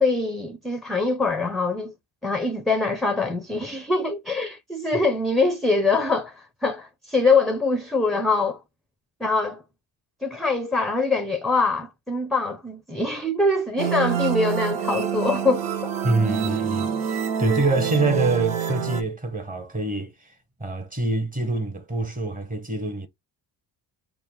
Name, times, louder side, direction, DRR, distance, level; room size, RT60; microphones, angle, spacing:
voice 1, 0.0-1.9 2.2-8.6 9.2-9.6 10.2-15.7, left 3 dB, ahead, 0.5 m, -23 dB
sound 1, 13.8-19.0, right 8 dB, 85° right, 0.9 m, -26 dB
voice 2, 16.0-20.3 20.6-23.1, right 2 dB, 15° right, 1.0 m, -25 dB
4.4 x 2.1 x 3.8 m
cardioid pair, 110°, 47 cm